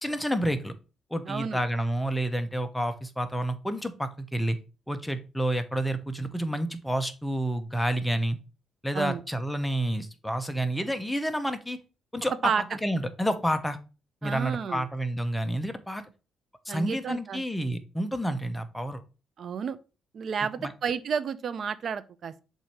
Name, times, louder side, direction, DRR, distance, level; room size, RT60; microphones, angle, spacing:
voice 1, 0.0-0.7 1.1-4.6 4.9-8.4 8.8-11.8 12.1-13.8 14.2-16.0 16.6-19.0 20.6-20.7, right 1 dB, 5° left, 0.9 m, -29 dB
voice 2, 1.3-1.6 8.9-9.2 12.4-12.6 14.2-14.8 16.7-17.4 19.4-19.8 20.1-22.4, right 6 dB, 55° right, 0.5 m, -31 dB
7.3 x 2.8 x 4.6 m
cardioid pair, 90°, 0 cm